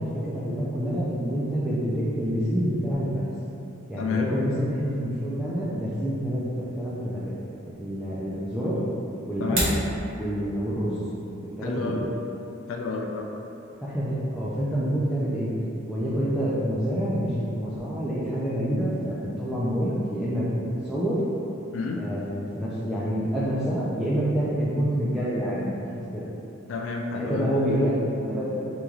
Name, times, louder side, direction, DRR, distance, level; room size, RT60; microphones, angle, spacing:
voice 1, 0.0-3.3 3.9-7.3 7.8-8.8 9.2-9.7 10.1-11.0 11.6-12.0 13.8-15.5 15.9-21.2 22.0-25.7 26.1-26.3 27.1-28.7, equal, 5° right, -9 dB, 0.4 m, -27 dB
voice 2, 4.0-4.3 9.4-9.6 11.6-12.0 12.7-13.3 21.7-22.0 26.7-27.5, left 4 dB, 65° left, 1 dB, 0.4 m, -30 dB
sound 1, 9.3-9.9, right 1 dB, 75° right, 1.2 m, -26 dB
5.2 x 3.0 x 2.3 m, 3.0 s
head